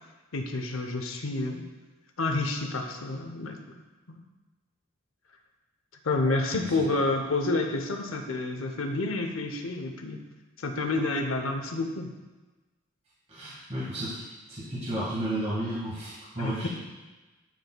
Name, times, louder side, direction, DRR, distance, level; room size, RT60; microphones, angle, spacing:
voice 1, 0.3-1.6 2.2-3.8 4.1-4.2 6.0-10.2 10.6-12.1 16.4-16.7, left 2 dB, 75° left, 4 dB, 0.7 m, -29 dB
voice 2, 13.3-14.2 14.5-16.7, right 1 dB, 35° right, -10 dB, 1.7 m, -32 dB
11.0 x 4.3 x 2.2 m, 1.2 s
head